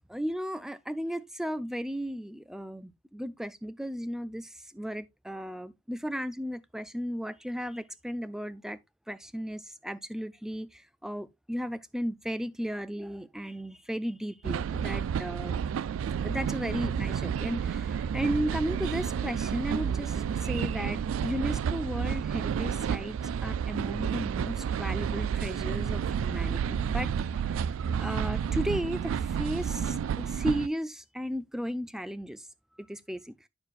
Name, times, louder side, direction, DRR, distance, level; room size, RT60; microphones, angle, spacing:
voice 1, 0.1-8.8 9.1-15.6 16.2-23.2 23.4-27.1 27.5-27.6 28.0-32.5 32.8-33.3, equal, ahead, 0.4 m, -35 dB
sound 1, 14.4-30.7, right 7 dB, 90° right, 0.3 m, -30 dB
9.6 x 6.6 x 2.4 m
head